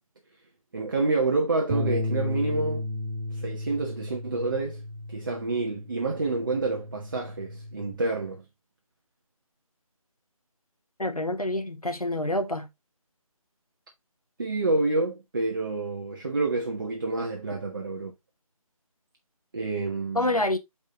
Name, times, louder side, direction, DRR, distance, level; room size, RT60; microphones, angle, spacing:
voice 1, 0.7-2.8 3.3-4.8 5.1-8.4 14.4-18.1 19.5-20.4, right 3 dB, 35° right, 1.4 m, -28 dB
Bass guitar, 1.7-7.9, left 1 dB, 10° right, 1.1 m, -34 dB
voice 2, 11.0-12.7 20.1-20.6, left 1 dB, 85° left, 1.5 m, -27 dB
6.7 x 5.1 x 3.5 m
figure-of-eight pair, 160°, 18 cm